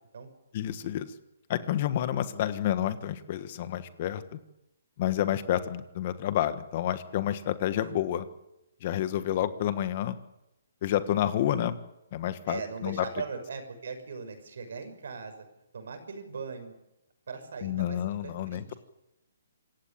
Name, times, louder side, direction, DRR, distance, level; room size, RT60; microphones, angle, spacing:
voice 1, 0.5-1.1 1.5-4.2 5.0-8.2 8.8-10.1 10.8-11.8 12.1-13.0 17.6-18.7, left 11 dB, 35° left, 12 dB, 1.4 m, -29 dB
voice 2, 11.2-11.6 12.5-15.4 15.7-16.8 17.3-18.8, right 5 dB, 65° right, 9 dB, 6.4 m, -40 dB
26.5 x 16.0 x 8.8 m, 0.90 s
hypercardioid pair, 165°, 0 cm